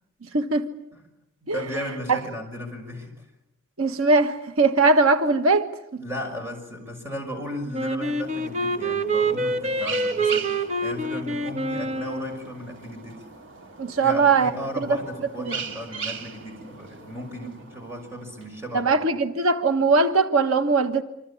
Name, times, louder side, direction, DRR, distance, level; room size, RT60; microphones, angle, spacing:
voice 1, 0.3-0.7 1.5-1.6 2.1-2.2 3.8-5.7 13.8-14.5 14.8-14.9 15.4-15.6 18.7-21.0, right 3 dB, 90° right, 1.5 m, -20 dB
voice 2, 1.4-3.2 6.0-13.3 14.0-18.9, equal, 10° right, 6.3 m, -35 dB
Wind instrument woodwind instrument, 7.7-12.5, right 2 dB, 35° right, 1.3 m, -26 dB
sound 1, 8.0-18.9, right 5 dB, 60° right, 3.1 m, -39 dB
26.5 x 26.5 x 8.7 m
head